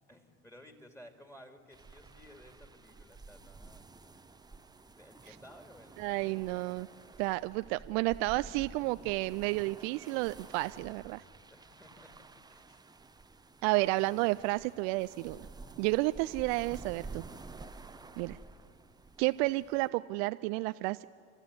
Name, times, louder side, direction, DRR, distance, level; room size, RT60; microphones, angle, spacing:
voice 1, 0.1-3.9 5.0-6.6 7.4-7.5 11.5-12.9, equal, 10° left, 5 dB, 2.6 m, -56 dB
sound 1, 1.7-19.9, right 3 dB, 10° right, 0.8 m, -51 dB
voice 2, 6.0-6.9 7.2-11.2 13.6-15.4 15.8-17.2 18.2-18.4 19.2-21.0, right 21 dB, 60° right, 14 dB, 0.4 m, -31 dB
29.5 x 13.5 x 9.7 m, 2.5 s
hypercardioid pair, 65°, 36 cm